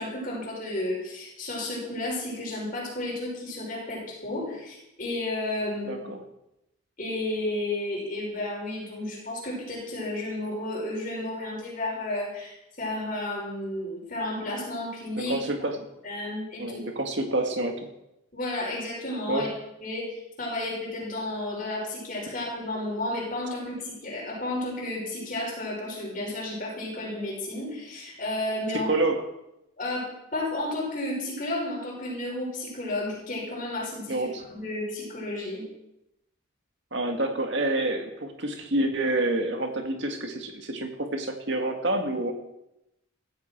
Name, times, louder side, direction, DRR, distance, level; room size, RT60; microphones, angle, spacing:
voice 1, 0.0-6.0 7.0-15.4 16.0-16.8 18.3-19.5 19.8-20.0 20.4-28.9 29.8-35.7, left 1 dB, 40° left, -3 dB, 5.8 m, -32 dB
voice 2, 5.8-6.2 15.2-15.9 16.6-17.8 19.3-19.5 28.9-29.2 34.1-34.5 36.9-42.3, right 2 dB, 60° right, 4 dB, 2.1 m, -28 dB
15.5 x 14.5 x 4.7 m, 0.87 s
head